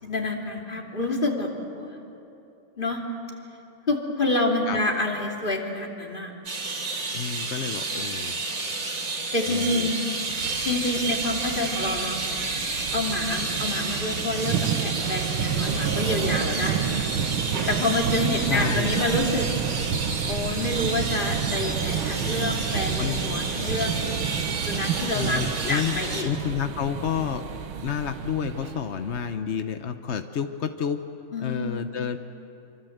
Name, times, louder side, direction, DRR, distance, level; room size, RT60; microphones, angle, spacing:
voice 1, 0.0-2.0 2.8-3.1 3.9-6.3 9.3-10.1 10.6-12.2 12.9-17.1 17.7-19.5 20.3-24.0 24.7-25.4 25.7-26.3 31.3-31.8, left 2 dB, 25° left, 1 dB, 2.8 m, -28 dB
sound 1, 6.5-26.2, right 3 dB, 55° right, 3.7 m, -31 dB
voice 2, 7.1-8.4 9.5-9.9 18.5-19.1 23.0-23.4 25.1-27.5 27.8-31.0 31.4-32.2, left 8 dB, 65° left, 8 dB, 0.6 m, -30 dB
sound 2, 10.3-29.3, right 8 dB, 70° right, 1.9 m, -30 dB
27.0 x 25.5 x 7.9 m, 2.8 s
omnidirectional pair, 2.4 m